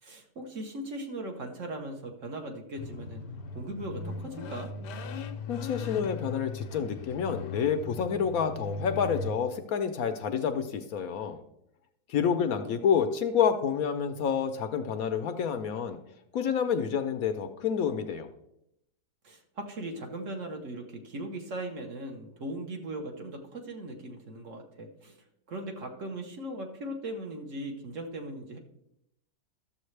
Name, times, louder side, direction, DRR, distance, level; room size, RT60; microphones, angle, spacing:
voice 1, 0.0-3.2 3.5-4.7 12.2-12.8 19.2-25.2 25.5-28.6, right 1 dB, 55° right, 3 dB, 1.2 m, -39 dB
sound 1, 2.8-9.3, left 4 dB, 90° left, 1.3 m, -38 dB
voice 2, 5.5-11.4 12.1-16.0 16.3-18.3, left 7 dB, 70° left, 8 dB, 1.0 m, -28 dB
12.5 x 7.1 x 3.2 m, 0.80 s
omnidirectional pair, 1.8 m